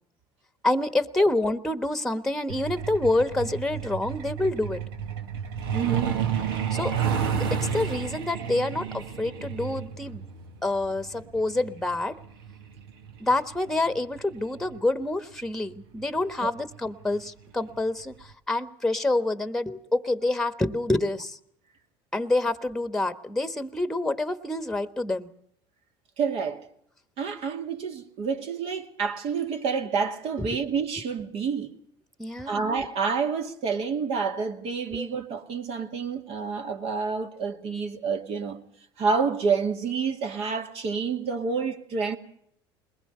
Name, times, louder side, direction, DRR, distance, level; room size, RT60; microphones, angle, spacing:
voice 1, 0.6-4.8 6.7-6.9 7.3-10.2 10.6-12.2 13.2-21.4 22.1-25.3 30.4-30.6 32.2-32.7 34.9-35.1, left 2 dB, 5° left, 1.3 m, -27 dB
Truck, 2.5-14.8 16.0-16.2 16.6-16.8 17.1-17.4 17.7-17.8 18.3-18.4, right 7 dB, 85° right, 1.7 m, -31 dB
voice 2, 5.7-6.1 16.4-16.5 26.2-26.7 27.2-31.7 32.5-38.6 39.0-42.2, right 5 dB, 55° right, 2.5 m, -28 dB
21.5 x 20.0 x 6.7 m
hypercardioid pair, 85°, 12 cm